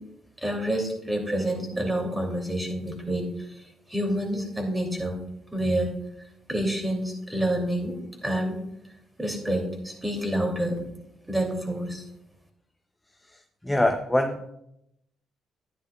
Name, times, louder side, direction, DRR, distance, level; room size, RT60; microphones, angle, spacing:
voice 1, 0.4-3.3 3.9-5.2 5.5-5.9 6.5-8.6 9.2-10.8 11.3-12.0, right 1 dB, 10° right, 2 dB, 2.7 m, -28 dB
voice 2, 13.3-14.5, left 1 dB, 10° left, 5 dB, 0.6 m, -25 dB
11.5 x 9.8 x 2.3 m, 0.79 s
cardioid pair, 90°, 0 cm